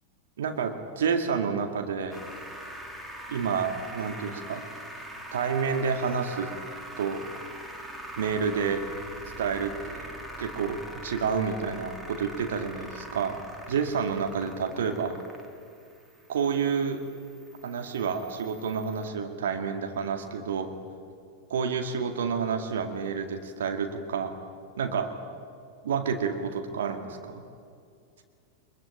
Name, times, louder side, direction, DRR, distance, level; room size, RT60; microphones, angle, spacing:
voice 1, 0.4-2.2 3.3-4.7 5.3-6.5 7.0-7.2 8.2-8.8 9.4-10.1 10.4-13.4 13.7-15.2 16.3-17.0 17.6-20.7 21.5-24.4 24.8-25.1 25.8-27.4, right 6 dB, 60° right, 5 dB, 2.2 m, -29 dB
sound 1, 2.1-19.1, right 1 dB, 10° right, 3.4 m, -43 dB
24.0 x 22.5 x 9.0 m, 2.3 s
figure-of-eight pair, 90°, 0 cm